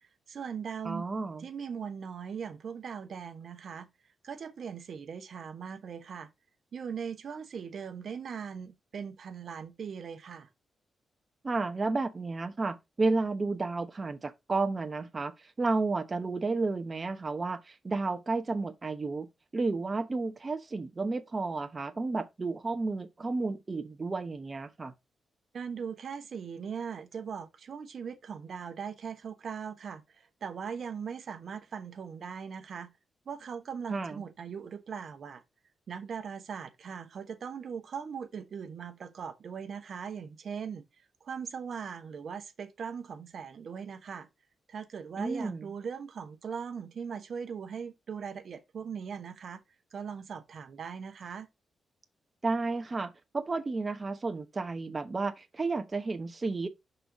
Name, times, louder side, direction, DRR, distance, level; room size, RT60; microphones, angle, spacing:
voice 1, 0.0-1.1 1.4-3.9 4.2-6.3 6.7-10.5 25.5-32.9 33.3-35.4 35.9-44.3 44.7-49.6 49.9-51.5, right 6 dB, 65° right, 1.0 m, -40 dB
voice 2, 0.8-1.5 11.4-19.3 19.5-24.9 33.9-34.2 45.2-45.6 52.4-56.7, right 3 dB, 35° right, 0.9 m, -32 dB
5.5 x 3.9 x 4.7 m
cardioid pair, 65°, 0 cm